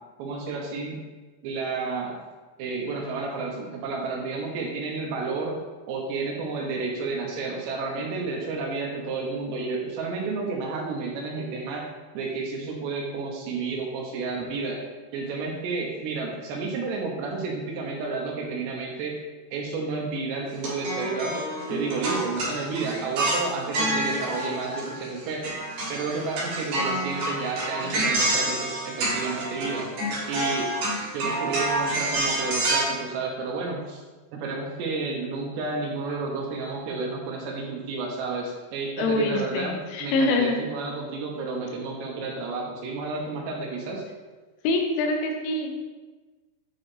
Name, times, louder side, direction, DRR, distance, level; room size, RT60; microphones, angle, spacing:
voice 1, 0.2-1.0 1.4-2.1 2.6-5.6 5.9-11.9 12.1-14.8 15.1-19.1 19.5-21.4 21.7-25.6 25.9-29.9 30.3-30.7 31.1-34.0 34.3-44.0, right 3 dB, 75° right, 0 dB, 2.7 m, -31 dB
sound 1, 20.5-25.2 25.4-32.8, right 1 dB, 55° right, 3.2 m, -28 dB
voice 2, 39.0-40.6 44.6-45.8, left 2 dB, 85° left, 3 dB, 3.3 m, -25 dB
8.5 x 4.6 x 3.2 m, 1.3 s
omnidirectional pair, 5.5 m